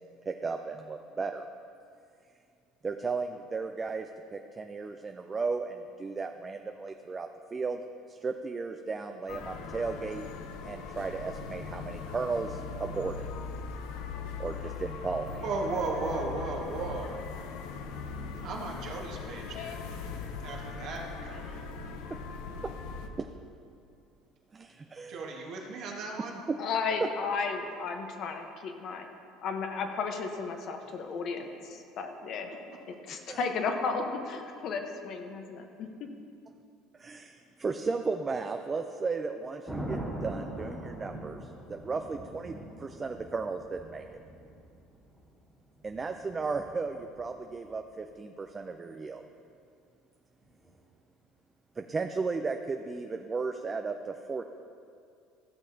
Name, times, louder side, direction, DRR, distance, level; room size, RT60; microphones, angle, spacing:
voice 1, 0.3-1.5 2.8-7.8 8.1-10.3 10.6-13.2 14.4-15.4 23.2-23.3 24.5-25.2 26.5-26.6 27.0-27.1 33.3-33.4 36.9-44.2 45.8-49.2 51.8-54.4, right 4 dB, 25° right, 5 dB, 0.4 m, -35 dB
sound 1, 9.3-23.1, left 5 dB, 75° left, 0.6 m, -40 dB
voice 2, 15.4-17.1 18.4-19.8 20.4-21.6 25.1-26.4, right 3 dB, 60° right, -1 dB, 1.6 m, -35 dB
voice 3, 26.6-29.1 29.4-32.5 32.9-36.1, left 5 dB, 55° left, 4 dB, 1.0 m, -34 dB
Thunder, 39.7-47.7 50.4-50.8, right 1 dB, ahead, 1.8 m, -42 dB
14.5 x 6.4 x 2.8 m, 2.4 s
supercardioid pair, 90°, 0 cm